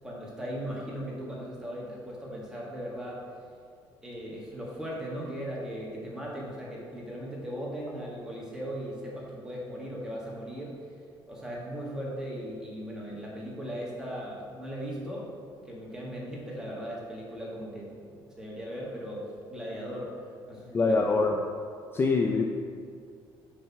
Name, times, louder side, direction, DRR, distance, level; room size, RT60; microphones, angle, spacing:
voice 1, 0.0-3.2 4.0-10.8 11.2-15.3 15.6-20.1 20.5-21.0, equal, 5° right, -5 dB, 1.5 m, -38 dB
voice 2, 20.7-21.3 21.9-22.5, left 3 dB, 25° left, 2 dB, 0.4 m, -24 dB
7.6 x 3.4 x 5.7 m, 2.2 s
cardioid pair, 140°, 9 cm